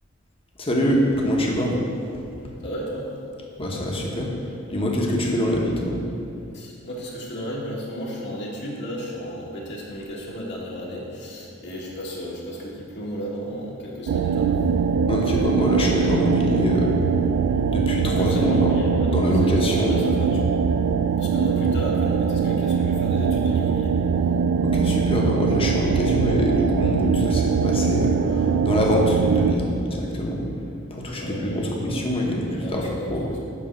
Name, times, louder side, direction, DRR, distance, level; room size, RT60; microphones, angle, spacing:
voice 1, 0.6-1.7 2.4-2.5 3.6-6.0 15.1-16.9 17.7-18.8 19.1-20.0 24.6-30.4 30.9-33.2, equal, 25° left, -1 dB, 1.1 m, -24 dB
voice 2, 2.6-3.1 6.5-14.5 18.2-20.4 21.2-23.9 31.1-31.7 32.6-33.4, equal, 55° left, -5 dB, 1.5 m, -34 dB
sound 1, 14.1-29.5, right 6 dB, 80° right, 0.3 m, -22 dB
9.7 x 3.5 x 6.4 m, 2.6 s
head